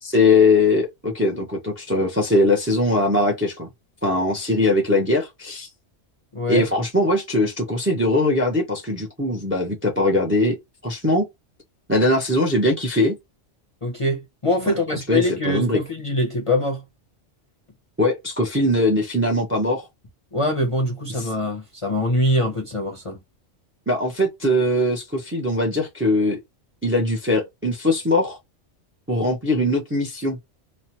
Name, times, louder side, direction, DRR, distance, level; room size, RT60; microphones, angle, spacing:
voice 1, 0.0-3.7 4.0-5.7 6.5-10.6 10.8-11.2 11.9-13.1 15.1-15.8 18.0-19.9 21.2-21.3 23.9-26.4 26.8-28.4 29.1-30.4, left 2 dB, 15° right, 0.6 m, -21 dB
voice 2, 6.3-6.7 13.8-16.8 20.3-23.2, left 1 dB, 30° left, 0.7 m, -23 dB
3.0 x 2.2 x 2.8 m
omnidirectional pair, 1.2 m